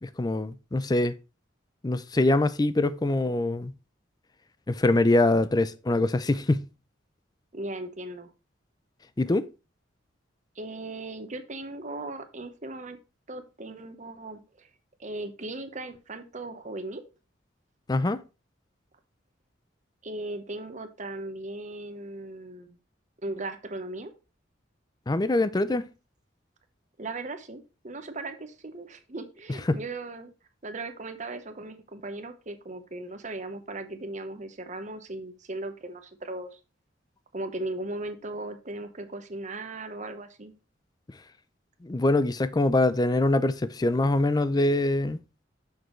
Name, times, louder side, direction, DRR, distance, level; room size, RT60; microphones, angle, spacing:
voice 1, 0.0-1.1 1.8-3.7 4.7-6.7 9.2-9.5 17.9-18.2 25.1-25.8 29.7-29.8 41.8-45.2, left 2 dB, 20° left, 0.4 m, -24 dB
voice 2, 7.5-8.3 10.6-13.0 13.3-14.7 15.0-17.0 20.0-22.8 23.2-24.1 27.0-30.3 30.6-36.6 37.3-40.5, right 2 dB, 40° right, 0.9 m, -37 dB
6.7 x 6.5 x 3.1 m
head